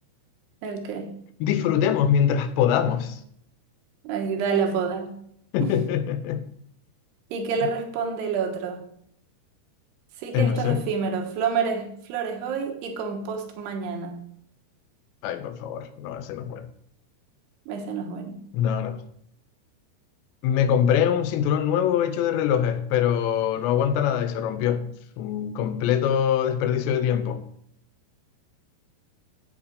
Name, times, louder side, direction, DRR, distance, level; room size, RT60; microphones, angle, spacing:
voice 1, 0.6-1.1 4.0-5.2 5.6-5.7 7.3-8.9 10.2-14.2 17.7-18.4, right 6 dB, 75° right, 3.2 m, -28 dB
voice 2, 1.4-3.2 5.5-6.5 10.3-10.8 15.2-16.7 18.5-19.0 20.4-24.9 25.2-27.5, left 9 dB, 90° left, 3.0 m, -23 dB
8.7 x 7.3 x 5.1 m
omnidirectional pair, 4.9 m